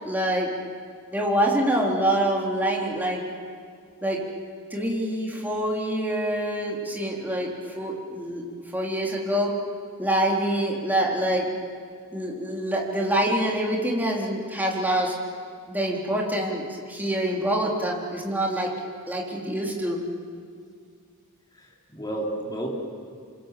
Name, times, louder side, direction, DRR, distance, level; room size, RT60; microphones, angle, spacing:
voice 1, 0.0-0.5 1.1-3.2 4.0-4.2 4.7-8.4 8.7-9.5 10.0-11.5 12.1-15.1 15.7-18.7 19.1-20.0, right 1 dB, 10° right, -3 dB, 4.0 m, -25 dB
voice 2, 21.5-22.7, right 1 dB, 20° left, -3 dB, 4.6 m, -32 dB
27.5 x 25.5 x 7.8 m, 2.2 s
head